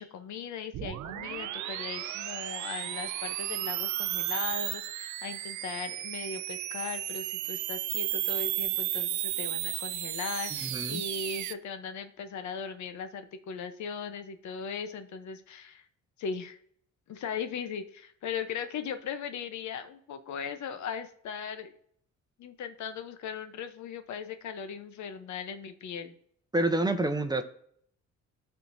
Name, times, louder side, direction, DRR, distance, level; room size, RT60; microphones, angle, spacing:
voice 1, 0.0-15.9 16.2-16.6 17.1-21.7 22.4-26.1, left 6 dB, 70° left, 9 dB, 0.9 m, -38 dB
sound 1, 0.7-11.5, right 13 dB, 75° right, 0.5 m, -34 dB
voice 2, 10.6-11.0 26.5-27.4, right 2 dB, 15° right, 8 dB, 0.7 m, -27 dB
12.5 x 4.5 x 2.7 m, 0.64 s
cardioid pair, 90°, 30 cm